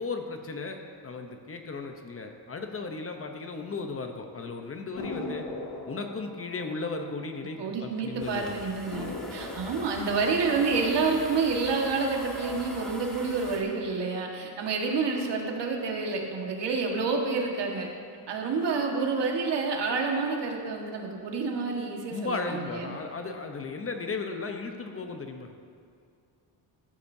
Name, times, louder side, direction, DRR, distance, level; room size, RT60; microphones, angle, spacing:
voice 1, 0.0-5.5 5.9-8.6 22.1-25.5, left 3 dB, 30° left, 4 dB, 0.9 m, -35 dB
sound 1, 5.0-8.0 8.3-8.4 8.9-11.9 12.3-12.9, left 2 dB, 55° left, 2.5 m, -41 dB
voice 2, 7.6-17.9 18.3-23.0, right 4 dB, 70° right, 0 dB, 1.7 m, -28 dB
sound 2, 8.2-13.6, equal, ahead, 1.7 m, -43 dB
14.0 x 13.5 x 2.8 m, 2.4 s
cardioid pair, 140°, 43 cm